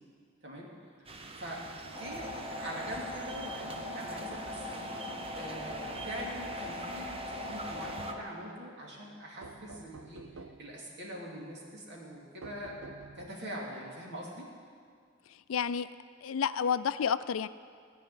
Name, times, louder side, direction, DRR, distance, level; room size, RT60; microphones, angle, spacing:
sound 1, 1.1-8.1, right 3 dB, 30° right, 0.8 m, -45 dB
voice 1, 1.4-5.0 5.3-14.5, equal, 55° right, -3 dB, 2.7 m, -43 dB
sound 2, 1.9-8.2, left 2 dB, 15° right, 1.9 m, -40 dB
sound 3, 5.7-6.4 9.4-10.7 12.4-13.6, right 3 dB, 85° right, 0.7 m, -50 dB
voice 2, 15.5-15.9 16.2-17.5, left 7 dB, 75° left, 14 dB, 0.4 m, -30 dB
15.5 x 5.5 x 9.4 m, 2.1 s
head